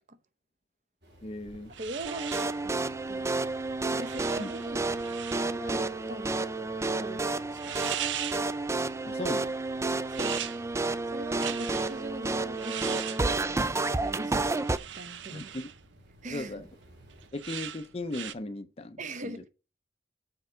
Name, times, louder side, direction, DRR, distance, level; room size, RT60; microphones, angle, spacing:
sound 1, 1.0-17.3, left 1 dB, 70° right, 3.0 m, -57 dB
voice 1, 1.2-1.7 4.4-4.5 9.1-9.5 15.3-15.7 16.2-16.6 17.3-19.0 19.2-19.4, left 2 dB, 35° left, 0.5 m, -37 dB
sound 2, 1.4-18.3, right 10 dB, 90° right, 0.6 m, -41 dB
voice 2, 1.8-3.4 3.9-4.9 5.6-6.5 7.0-7.7 10.1-10.4 11.1-14.5 14.9-15.5 16.2-16.7 19.0-19.5, right 1 dB, 40° right, 0.8 m, -41 dB
sound 3, 2.0-14.8, right 3 dB, 15° right, 0.3 m, -30 dB
6.6 x 4.6 x 6.7 m
head